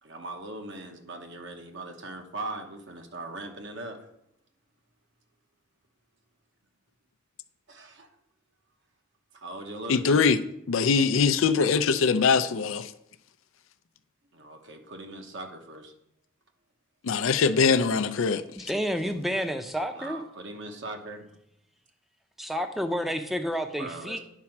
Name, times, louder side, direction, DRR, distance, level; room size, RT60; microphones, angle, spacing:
voice 1, 0.0-4.1 7.7-8.1 9.3-10.3 14.3-15.9 19.9-21.3 23.8-24.2, right 2 dB, 65° right, 1.1 m, -40 dB
voice 2, 9.9-10.4 10.7-12.9 17.0-18.7, left 5 dB, 80° left, 0.5 m, -22 dB
voice 3, 18.6-20.2 22.4-24.2, equal, ahead, 0.6 m, -30 dB
9.5 x 4.3 x 5.9 m
head